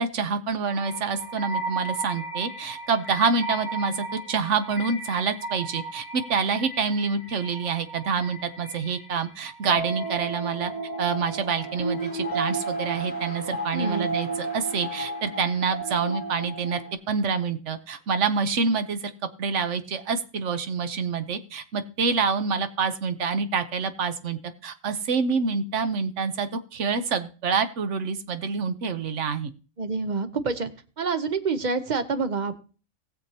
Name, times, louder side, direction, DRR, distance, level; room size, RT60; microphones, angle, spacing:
voice 1, 0.0-10.7 11.0-16.8 17.1-19.1 19.4-29.5, right 5 dB, 65° right, 10 dB, 1.1 m, -27 dB
sound 1, 0.7-16.9, right 2 dB, 10° right, 0.9 m, -34 dB
sound 2, 10.9-11.2 11.4-17.3 17.9-18.0, left 1 dB, 15° left, 1.6 m, -48 dB
voice 2, 13.7-14.1 29.8-30.7 31.0-32.6, right 4 dB, 40° right, 10 dB, 0.8 m, -27 dB
19.5 x 6.8 x 2.8 m, 0.37 s
omnidirectional pair, 1.4 m